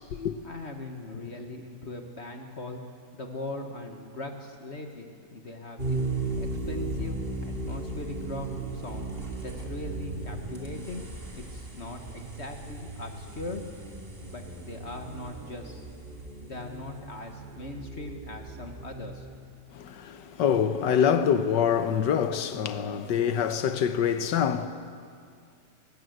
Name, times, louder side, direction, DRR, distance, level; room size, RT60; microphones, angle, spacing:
voice 1, 0.4-2.8 3.1-11.0 11.3-13.6 14.3-15.9 16.4-19.3, left 2 dB, 40° left, 1.7 m, -40 dB
sound 1, 5.8-19.4, right 2 dB, 30° right, 2.7 m, -36 dB
voice 2, 19.7-24.7, left 8 dB, 80° left, 1.5 m, -25 dB
21.5 x 19.0 x 7.9 m
omnidirectional pair, 1.9 m